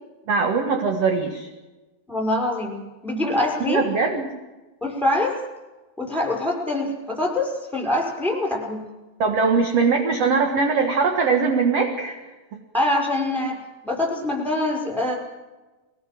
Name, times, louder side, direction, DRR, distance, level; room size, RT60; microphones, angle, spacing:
voice 1, 0.3-1.5 3.7-4.3 9.2-12.2 12.5-12.6, right 4 dB, 50° right, 4 dB, 2.1 m, -21 dB
voice 2, 2.1-3.8 4.8-5.4 6.0-8.9 12.7-13.6 13.8-15.2, left 1 dB, ahead, -1 dB, 4.9 m, -24 dB
22.0 x 18.0 x 7.6 m, 1.2 s
omnidirectional pair, 5.0 m